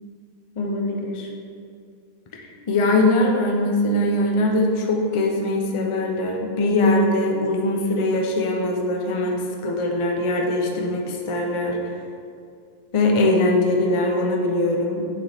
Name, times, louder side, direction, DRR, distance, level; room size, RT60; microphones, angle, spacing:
voice 1, 0.6-1.3 2.7-11.9 12.9-15.1, left 1 dB, 30° left, 1 dB, 0.6 m, -21 dB
7.8 x 6.6 x 3.5 m, 2.3 s
omnidirectional pair, 1.6 m